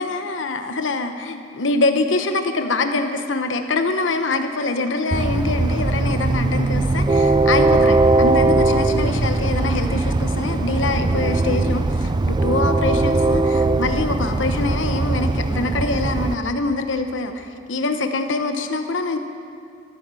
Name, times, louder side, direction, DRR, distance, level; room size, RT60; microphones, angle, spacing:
voice 1, 0.0-19.2, left 3 dB, 90° left, 6 dB, 1.0 m, -24 dB
Train, 5.1-16.3, right 2 dB, 25° right, 0.4 m, -20 dB
13.5 x 12.0 x 7.6 m, 2.4 s
head